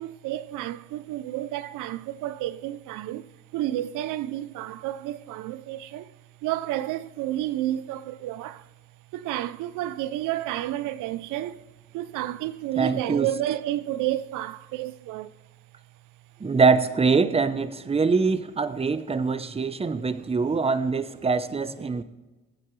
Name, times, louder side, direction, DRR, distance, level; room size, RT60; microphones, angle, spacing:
voice 1, 0.0-3.2 3.5-6.1 6.4-8.6 9.1-11.6 11.9-15.3, right 13 dB, 90° right, 0.5 m, -30 dB
voice 2, 12.8-13.3 16.4-22.0, right 4 dB, 20° right, 0.7 m, -23 dB
21.5 x 8.1 x 3.2 m
cardioid pair, 90°, 30 cm